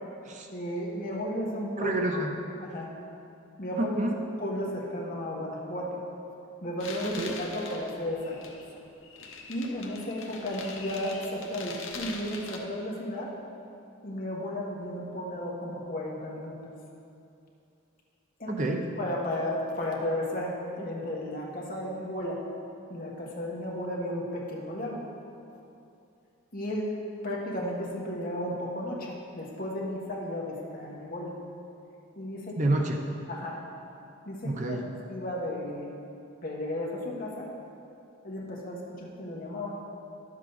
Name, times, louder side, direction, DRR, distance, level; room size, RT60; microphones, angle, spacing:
voice 1, 0.5-1.9 2.6-2.9 3.6-4.0 4.4-6.0 6.6-8.4 9.5-13.3 14.0-16.6 18.4-18.6 19.0-22.4 22.9-25.0 26.5-26.9 27.2-31.3 32.2-32.6 33.3-33.6 34.3-34.8 35.1-35.9 36.4-37.5 38.2-39.8, left 1 dB, 40° left, -3 dB, 1.3 m, -34 dB
voice 2, 1.8-2.3 3.8-4.2 7.0-7.3 18.5-18.9 32.6-33.0 34.4-34.9, right 2 dB, 35° right, 2 dB, 0.6 m, -28 dB
sound 1, 6.8-12.6, left 4 dB, 70° left, 0.9 m, -42 dB
11.0 x 7.5 x 4.0 m, 2.7 s
head